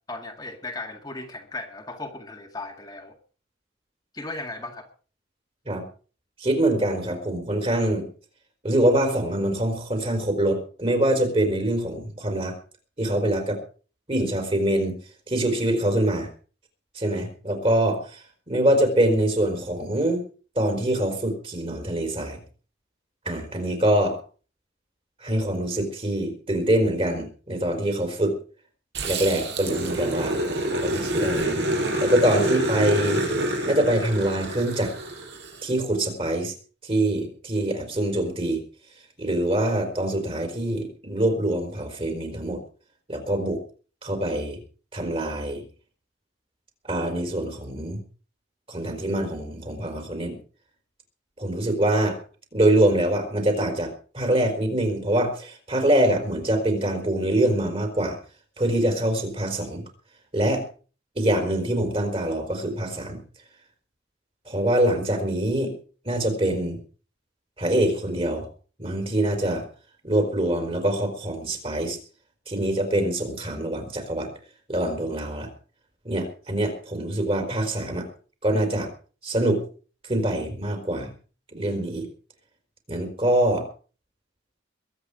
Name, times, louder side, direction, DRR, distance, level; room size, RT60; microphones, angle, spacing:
voice 1, 0.1-3.1 4.1-4.9, left 2 dB, 20° left, 2 dB, 1.9 m, -36 dB
voice 2, 6.4-8.1 8.6-12.6 13.0-13.6 14.1-15.0 15.3-16.3 16.9-20.2 20.6-22.4 23.2-24.2 25.2-28.4 29.0-30.4 30.8-31.6 32.0-33.2 33.7-34.9 35.6-36.5 36.8-38.6 39.2-42.6 43.1-43.6 44.0-44.6 44.9-45.6 46.8-48.0 48.7-50.4 51.4-52.2 52.5-58.2 58.6-59.8 60.3-60.6 61.2-63.2 64.5-65.7 66.0-66.8 67.6-68.5 68.8-69.6 70.0-72.0 72.5-74.3 74.7-75.5 76.0-78.1 78.4-78.9 79.2-79.6 80.1-81.1 81.5-82.1 82.9-83.7, right 1 dB, 30° right, 5 dB, 4.4 m, -24 dB
Growling, 28.9-35.6, right 1 dB, 60° right, 5.9 m, -27 dB
22.5 x 8.8 x 5.0 m, 0.39 s
head